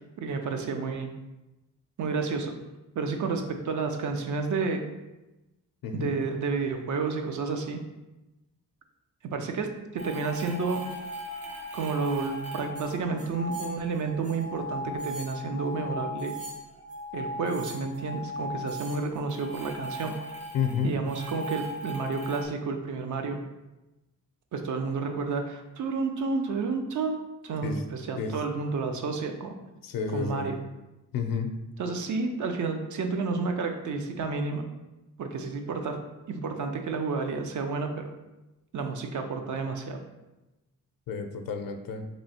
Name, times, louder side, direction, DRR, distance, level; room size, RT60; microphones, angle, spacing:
voice 1, 0.2-1.1 2.0-2.5 3.0-4.9 5.9-7.8 9.2-10.8 11.7-16.3 17.1-20.1 20.8-23.4 24.5-29.5 30.1-30.5 31.8-34.6 35.2-36.0 36.3-38.1 38.7-40.0, right 4 dB, 60° right, 5 dB, 0.6 m, -30 dB
voice 2, 5.8-6.1 20.5-21.0 27.6-27.8 28.2-28.3 29.8-30.5 31.1-31.5 41.1-42.1, left 6 dB, 80° left, 6 dB, 0.5 m, -30 dB
sound 1, 10.0-22.5, left 1 dB, 45° right, 1.4 m, -38 dB
3.1 x 2.6 x 4.2 m, 1.0 s
cardioid pair, 115°, 34 cm